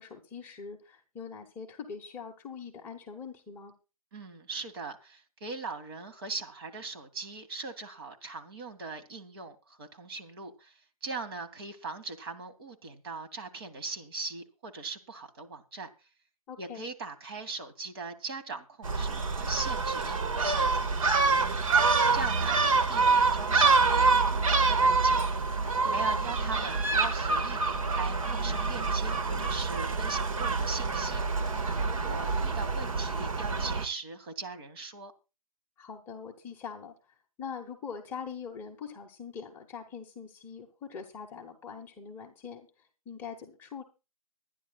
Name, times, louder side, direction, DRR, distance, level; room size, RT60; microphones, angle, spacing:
voice 1, 0.0-3.7 16.5-16.8 25.8-26.3 35.8-36.9 37.4-42.7 43.0-43.8, left 6 dB, 10° left, 1.2 m, -43 dB
voice 2, 4.1-15.9 16.6-21.7 22.1-25.2 25.9-31.2 31.8-35.1, right 4 dB, 40° right, 2.3 m, -40 dB
Gull seagull, 18.8-33.8, right 4 dB, 60° right, 1.8 m, -26 dB
24.0 x 10.0 x 2.4 m
hypercardioid pair, 160°, 19 cm